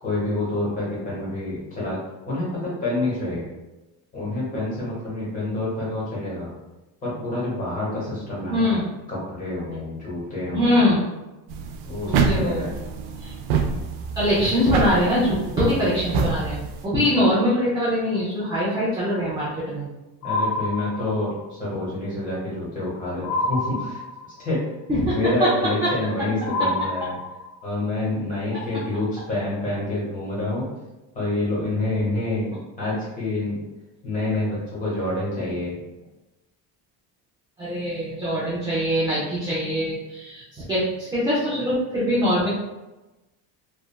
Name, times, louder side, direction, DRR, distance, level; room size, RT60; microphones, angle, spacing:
voice 1, 0.0-2.0 2.2-3.5 4.1-6.5 7.0-8.8 9.1-10.9 11.9-12.7 20.2-24.0 24.4-24.6 25.1-27.2 27.6-30.7 31.1-33.6 34.0-35.8, left 2 dB, 20° left, -7 dB, 1.0 m, -27 dB
voice 2, 8.5-8.8 10.5-11.0 12.1-12.7 13.2-13.3 14.2-19.8 24.9-25.1 37.6-42.5, equal, 10° right, -9 dB, 0.3 m, -23 dB
sound 1, 11.5-16.8, right 5 dB, 70° right, 0.5 m, -26 dB
Submarine Sonar, 20.2-21.5 23.2-24.5 26.5-27.7, left 2 dB, 85° left, 0.9 m, -27 dB
3.1 x 2.3 x 2.2 m, 1.0 s
cardioid pair, 175°, 39 cm